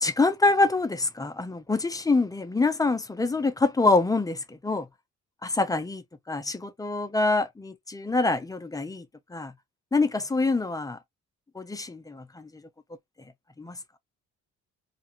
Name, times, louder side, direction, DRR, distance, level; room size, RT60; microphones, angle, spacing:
voice 1, 0.0-4.9 5.4-9.5 9.9-11.0 11.5-12.5 13.6-13.8, left 3 dB, 10° left, 0.4 m, -25 dB
2.5 x 2.2 x 2.8 m
cardioid pair, 90°, 30 cm